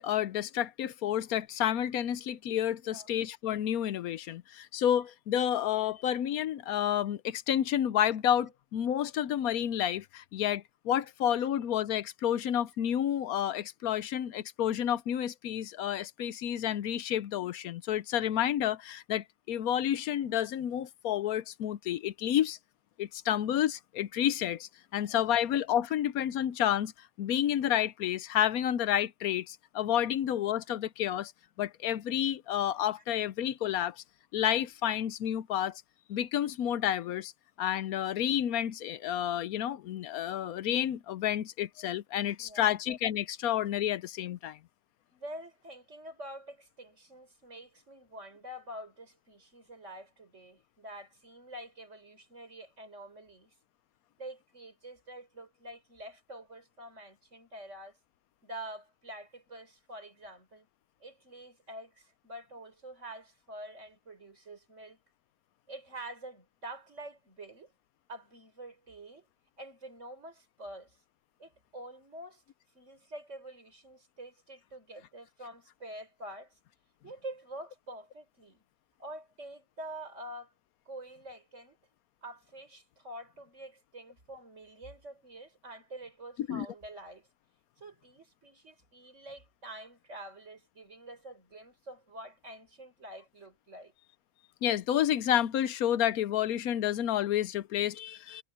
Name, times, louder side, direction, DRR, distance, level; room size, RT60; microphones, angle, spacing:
voice 1, 0.0-22.6 23.0-31.3 31.6-34.0 34.3-35.8 36.1-37.3 37.6-44.6 86.5-86.7 94.6-98.4, left 11 dB, 80° left, 1.1 m, -30 dB
voice 2, 24.9-25.2 42.4-42.8 45.1-53.5 54.2-58.0 58.4-60.7 61.0-65.0 65.7-67.7 68.1-69.3 69.6-71.0 71.4-72.4 72.7-76.5 77.0-78.6 79.0-80.5 80.9-81.8 82.2-87.3 87.8-93.9, right 1 dB, 55° right, 5.3 m, -47 dB
omnidirectional pair, 1.5 m